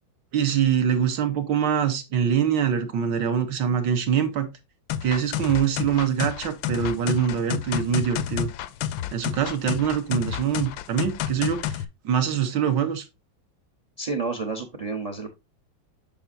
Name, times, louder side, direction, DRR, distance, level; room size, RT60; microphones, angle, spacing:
voice 1, 0.3-4.5 5.0-8.5 9.1-13.1, right 8 dB, 70° right, 1.6 m, -24 dB
sound 1, 4.9-11.8, left 11 dB, 80° left, 1.3 m, -30 dB
voice 2, 14.0-15.3, right 4 dB, 50° right, 0.4 m, -30 dB
7.0 x 6.0 x 2.5 m
omnidirectional pair, 2.1 m